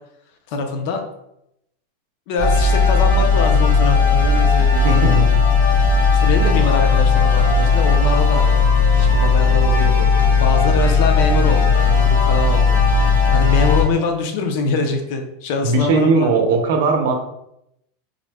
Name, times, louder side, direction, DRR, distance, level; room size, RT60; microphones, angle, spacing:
voice 1, 0.5-1.0 2.3-5.2 5.8-8.5 8.9-10.1 10.4-12.8 13.3-16.3, left 3 dB, 45° left, 5 dB, 0.5 m, -24 dB
sound 1, 2.4-13.8, left 4 dB, 85° left, 1.1 m, -15 dB
voice 2, 4.8-5.3 15.6-17.1, right 3 dB, 65° right, 3 dB, 0.6 m, -17 dB
3.6 x 2.1 x 3.4 m, 0.80 s
supercardioid pair, 175°, 0 cm